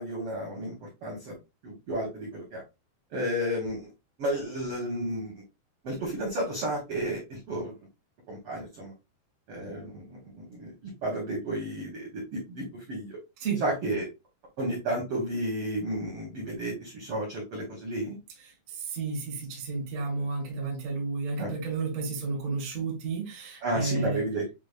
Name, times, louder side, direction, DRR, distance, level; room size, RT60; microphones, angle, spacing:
voice 1, 0.0-1.3 1.6-2.6 3.1-3.9 4.2-5.3 5.8-7.7 8.3-8.9 9.5-13.2 13.6-14.1 14.6-18.2 21.4-21.5 23.6-24.4, right 1 dB, 65° right, 1.4 m, -32 dB
voice 2, 18.7-24.2, right 4 dB, 40° right, 1.0 m, -32 dB
7.2 x 2.4 x 2.4 m
omnidirectional pair, 4.3 m